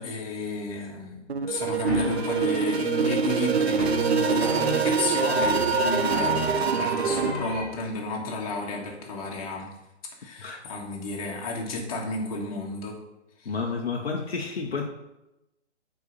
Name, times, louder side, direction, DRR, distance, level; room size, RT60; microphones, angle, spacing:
voice 1, 0.0-9.7 10.2-13.0 13.4-13.5, left 2 dB, 30° left, 0 dB, 1.6 m, -32 dB
sound 1, 1.3-7.3, right 6 dB, 60° right, 0.6 m, -25 dB
sound 2, 1.9-7.6, left 1 dB, ahead, 0.9 m, -31 dB
voice 2, 13.4-14.9, left 4 dB, 60° left, 2 dB, 1.0 m, -30 dB
8.1 x 4.6 x 5.4 m, 0.94 s
figure-of-eight pair, 140°, 35 cm